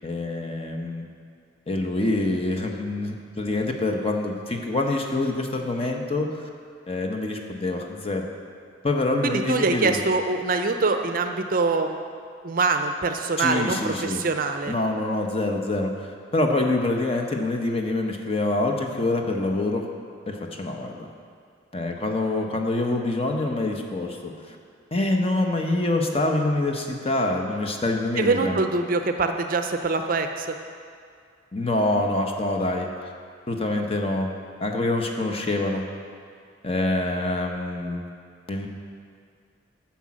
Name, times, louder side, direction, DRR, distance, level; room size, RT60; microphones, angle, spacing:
voice 1, 0.0-1.1 1.7-6.4 6.9-8.3 8.8-10.0 13.4-14.2 14.7-19.8 20.3-21.1 21.7-24.6 24.9-28.6 31.5-33.1 33.5-34.3 34.6-35.8 36.6-38.1 38.5-38.7, left 2 dB, 30° left, 2 dB, 0.9 m, -26 dB
voice 2, 9.2-12.0 12.4-14.7 28.2-30.5, right 3 dB, 45° right, 6 dB, 0.6 m, -24 dB
10.0 x 5.9 x 7.4 m, 2.2 s
head